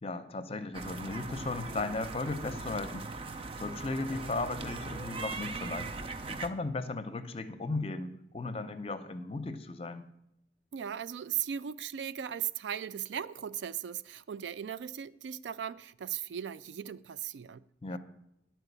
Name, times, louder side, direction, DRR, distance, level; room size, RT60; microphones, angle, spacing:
voice 1, 0.0-3.1 3.6-5.9 6.3-10.1 17.8-18.0, left 3 dB, 35° left, 0.6 m, -36 dB
sound 1, 0.7-6.5, right 3 dB, 30° right, 0.5 m, -40 dB
voice 2, 10.7-17.6, right 9 dB, 85° right, 0.4 m, -37 dB
11.0 x 4.5 x 8.1 m
head